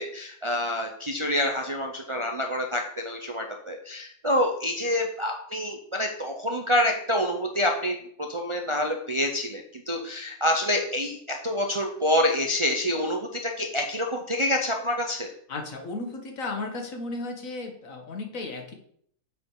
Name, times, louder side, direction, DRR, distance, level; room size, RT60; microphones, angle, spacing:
voice 1, 0.0-15.3, left 1 dB, 35° right, 2 dB, 0.5 m, -27 dB
voice 2, 15.5-18.7, left 3 dB, 70° left, 3 dB, 1.7 m, -34 dB
6.9 x 4.8 x 4.7 m, 0.64 s
omnidirectional pair, 1.4 m